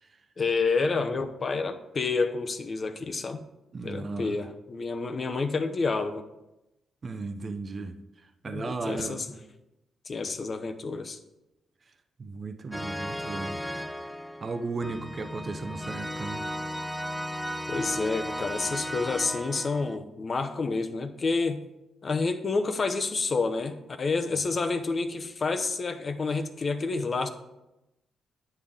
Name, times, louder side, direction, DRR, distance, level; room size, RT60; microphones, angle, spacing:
voice 1, 0.4-3.4 3.8-6.2 8.4-9.3 10.1-11.2 17.7-21.6 22.0-27.3, left 4 dB, 45° left, 0.7 m, -29 dB
voice 2, 3.7-4.4 7.0-9.3 12.2-13.6 14.4-16.5 24.3-24.4, right 3 dB, 45° right, 0.6 m, -35 dB
sound 1, 12.7-20.0, equal, 5° left, 0.4 m, -35 dB
9.4 x 5.5 x 3.5 m
cardioid pair, 70°, 0 cm